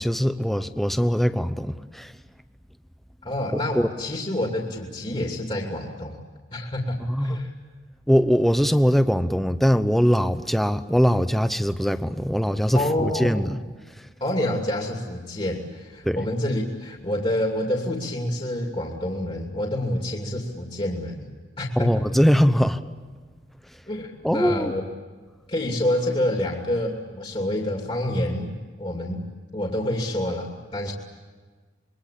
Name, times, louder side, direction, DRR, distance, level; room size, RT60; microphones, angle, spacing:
voice 1, 0.0-2.1 3.7-3.9 7.0-7.4 8.1-13.6 14.0-14.1 16.0-16.2 21.8-22.8 24.2-24.7, equal, ahead, 10 dB, 0.9 m, -21 dB
voice 2, 3.2-6.2 6.5-7.5 12.7-13.5 14.2-21.9 23.9-24.8 25.5-29.2 29.5-30.9, left 1 dB, 30° left, 0 dB, 2.8 m, -28 dB
26.5 x 23.5 x 8.6 m, 1.4 s
head